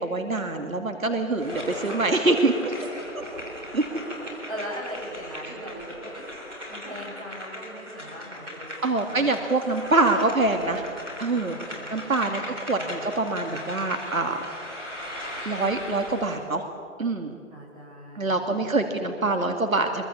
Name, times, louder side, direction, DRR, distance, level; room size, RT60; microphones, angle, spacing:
voice 1, 0.0-2.7 3.7-3.8 8.8-10.8 11.2-11.6 11.9-12.4 12.7-14.6 15.5-16.7 17.0-17.3 18.1-20.0, right 2 dB, 80° right, 5 dB, 2.5 m, -25 dB
sound 1, 1.4-16.4, left 1 dB, 5° right, 2.7 m, -38 dB
voice 2, 4.5-6.4 6.7-9.4 11.3-12.1 12.5-13.1 17.5-18.3 18.6-18.9, equal, 25° right, -4 dB, 6.9 m, -40 dB
24.5 x 23.0 x 8.5 m, 2.4 s
figure-of-eight pair, 170°, 41 cm